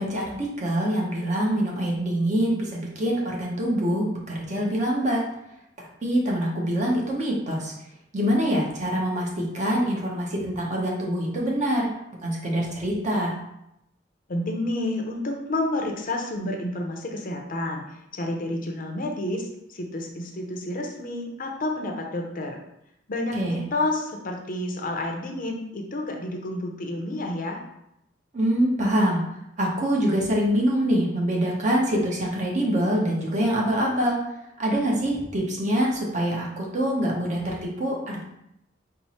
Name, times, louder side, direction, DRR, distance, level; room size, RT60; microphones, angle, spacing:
voice 1, 0.0-5.2 5.8-7.7 8.1-11.9 12.2-13.3 23.4-23.6 28.3-29.2 29.6-34.2 34.6-38.2, equal, 40° right, -2 dB, 0.9 m, -25 dB
voice 2, 14.3-17.8 18.1-22.6 23.1-27.6, left 1 dB, 50° left, 2 dB, 0.6 m, -30 dB
4.4 x 2.0 x 4.2 m, 0.81 s
head